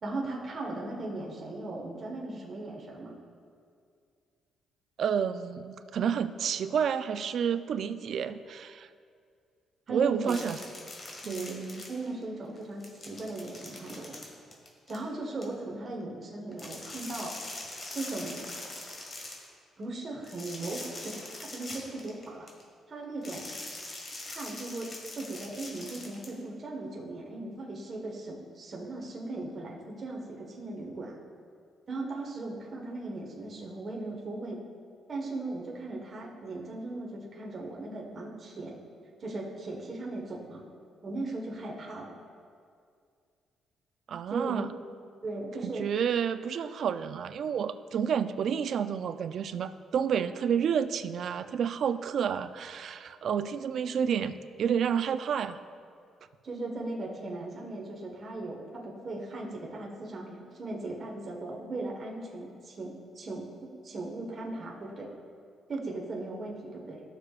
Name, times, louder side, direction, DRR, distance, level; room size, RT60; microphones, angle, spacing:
voice 1, 0.0-3.1 9.9-10.3 11.3-11.6 11.9-14.2 14.9-17.3 17.9-18.4 19.8-21.1 21.4-22.5 22.9-23.5 24.3-24.9 25.1-31.2 31.9-34.6 35.1-38.8 39.2-40.6 41.0-42.2 44.3-44.7 45.2-45.9 56.4-63.5 63.8-65.1 65.7-67.0, right 2 dB, 40° right, -2 dB, 1.3 m, -38 dB
voice 2, 5.0-8.9 9.9-10.6 11.2-11.8 44.1-44.7 45.6-55.6, right 7 dB, 65° right, 12 dB, 0.4 m, -30 dB
sound 1, 10.3-12.2 12.6-15.4 16.5-19.5 20.2-22.6 23.2-26.3, left 2 dB, 35° left, 1.9 m, -43 dB
15.5 x 6.7 x 2.4 m, 2.2 s
cardioid pair, 100°, 0 cm